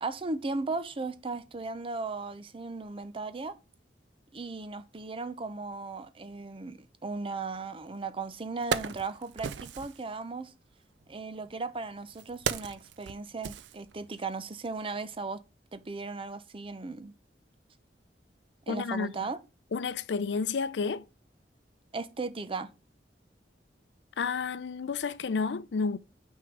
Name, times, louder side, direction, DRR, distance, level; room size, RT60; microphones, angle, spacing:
voice 1, 0.0-3.6 4.3-10.5 11.1-15.4 15.7-17.1 18.7-19.4 21.9-22.7, right 3 dB, 30° right, 0.6 m, -36 dB
Wood, 7.9-8.0 8.4-10.0 11.0-14.3 14.6-14.8, right 7 dB, 80° right, 0.4 m, -36 dB
voice 2, 18.7-19.1 19.7-21.1 24.2-26.0, left 5 dB, 80° left, 0.5 m, -31 dB
6.2 x 3.6 x 6.0 m
head